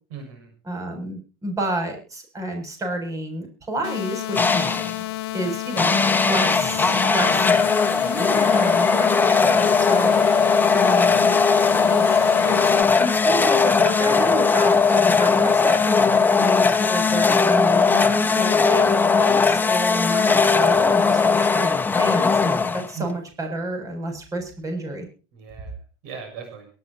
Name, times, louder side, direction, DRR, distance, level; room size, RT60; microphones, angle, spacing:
voice 1, 0.1-0.5 5.3-5.5 6.7-7.5 22.9-23.1 25.3-26.7, right 7 dB, 75° right, 5 dB, 6.8 m, -39 dB
voice 2, 0.7-4.8 5.3-7.5 8.0-10.1 10.7-11.4 11.9-12.6 13.0-25.1, right 1 dB, 25° right, 4 dB, 7.1 m, -29 dB
sound 1, 3.8-12.8, left 17 dB, 85° left, 0.9 m, -31 dB
sound 2, 4.4-5.0 5.8-23.1, left 5 dB, 15° left, 1.5 m, -19 dB
23.0 x 12.5 x 2.9 m, 0.35 s
supercardioid pair, 105°, 13 cm